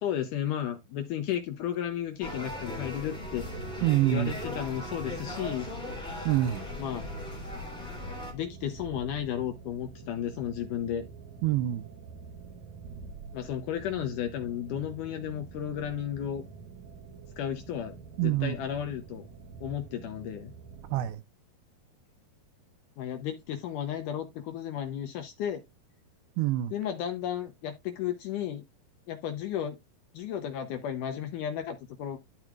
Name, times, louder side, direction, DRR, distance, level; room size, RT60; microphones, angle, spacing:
voice 1, 0.0-3.5 4.1-5.7 6.8-7.1 8.3-11.1 13.3-16.4 17.4-19.3 19.6-20.5 23.0-25.6 26.7-28.6 29.1-29.8 30.1-32.2, left 10 dB, 75° left, 1.9 m, -33 dB
sound 1, 2.2-8.3, left 1 dB, ahead, 2.2 m, -38 dB
sound 2, 3.2-21.1, right 5 dB, 60° right, 2.2 m, -47 dB
voice 2, 3.8-4.3 6.3-6.7 11.4-11.9 18.2-18.6 20.9-21.2 26.4-26.7, right 14 dB, 80° right, 2.4 m, -26 dB
13.0 x 4.6 x 2.4 m
omnidirectional pair, 4.5 m